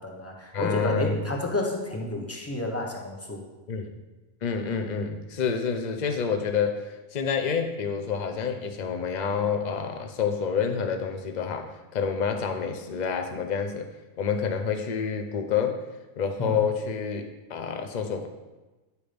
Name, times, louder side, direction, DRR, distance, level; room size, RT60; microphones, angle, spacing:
voice 1, 0.0-3.5 16.4-16.6, left 1 dB, 10° left, 0 dB, 1.0 m, -30 dB
voice 2, 0.5-1.2 3.7-3.9 4.4-13.9 14.2-15.8 16.2-18.3, left 6 dB, 40° left, 5 dB, 0.6 m, -28 dB
9.7 x 4.9 x 5.2 m, 1.2 s
omnidirectional pair, 1.6 m